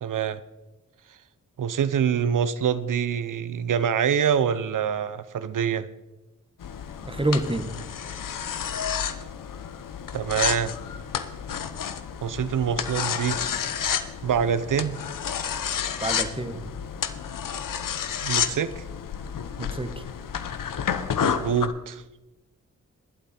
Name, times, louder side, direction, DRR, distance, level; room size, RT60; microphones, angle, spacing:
voice 1, 0.0-0.4 1.6-5.9 10.1-10.7 12.2-13.4 14.2-15.0 18.2-18.8 21.2-22.0, right 8 dB, 75° right, 14 dB, 0.7 m, -25 dB
sound 1, 6.6-21.7, left 8 dB, 80° left, 0.8 m, -30 dB
voice 2, 7.0-7.7 16.0-16.7 19.6-20.0, right 1 dB, 15° right, 9 dB, 1.4 m, -28 dB
20.5 x 8.1 x 4.3 m, 1.0 s
cardioid pair, 60°, 32 cm